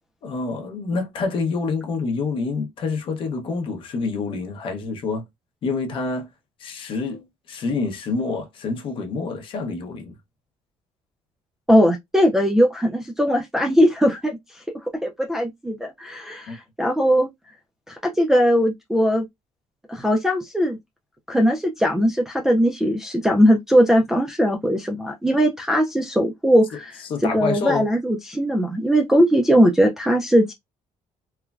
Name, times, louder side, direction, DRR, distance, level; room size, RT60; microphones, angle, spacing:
voice 1, 0.2-5.2 5.6-6.3 6.6-10.1 16.5-16.6 27.1-27.9, left 4 dB, 45° left, 0.7 m, -27 dB
voice 2, 11.7-14.4 15.0-17.3 17.9-19.3 19.9-20.8 21.3-30.5, equal, 5° right, 0.3 m, -19 dB
3.1 x 2.1 x 2.3 m
cardioid pair, 180°, 13 cm